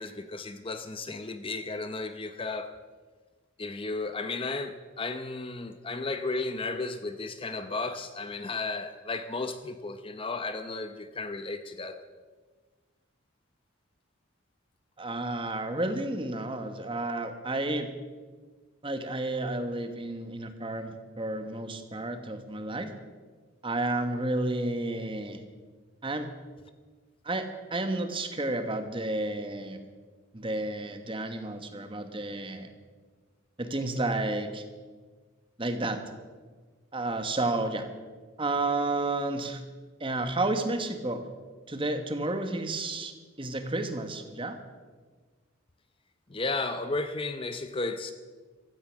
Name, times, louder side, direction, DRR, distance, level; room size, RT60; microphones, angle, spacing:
voice 1, 0.0-2.7 3.6-12.0 46.3-48.1, left 3 dB, 25° left, 9 dB, 0.7 m, -34 dB
voice 2, 15.0-17.9 18.8-22.9 23.6-25.4 26.0-26.3 27.2-29.8 30.3-32.7 33.6-34.6 35.6-36.0 36.9-37.9 38.4-39.6 40.0-41.2 41.7-44.6, right 2 dB, 25° right, 8 dB, 1.3 m, -31 dB
15.5 x 13.5 x 6.3 m, 1.4 s
head